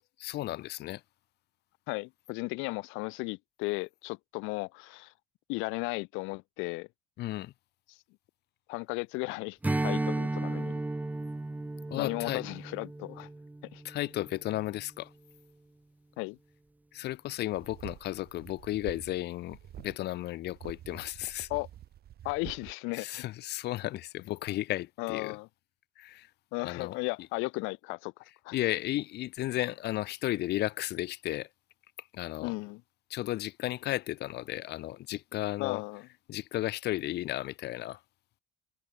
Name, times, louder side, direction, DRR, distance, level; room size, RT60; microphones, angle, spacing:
voice 1, 0.2-1.0 7.2-7.5 11.9-12.4 13.8-15.1 16.9-21.5 22.9-25.4 26.0-26.3 26.6-27.0 28.5-31.5 32.0-32.5 33.1-35.8 36.3-38.0, left 15 dB, 55° left, 0.8 m, -34 dB
voice 2, 1.9-5.1 5.5-6.9 7.9-8.0 8.7-10.8 12.0-13.3 13.7-13.8 16.2-16.4 21.5-21.7 22.2-23.2 25.0-25.5 26.5-28.6 32.4-32.8 35.6-36.1, left 26 dB, 90° left, 0.8 m, -35 dB
Strum, 9.6-14.4, right 2 dB, 10° right, 1.0 m, -34 dB
sound 1, 17.5-19.2 19.5-20.0 20.5-22.7, right 11 dB, 50° right, 4.0 m, -47 dB
cardioid pair, 135°, 20 cm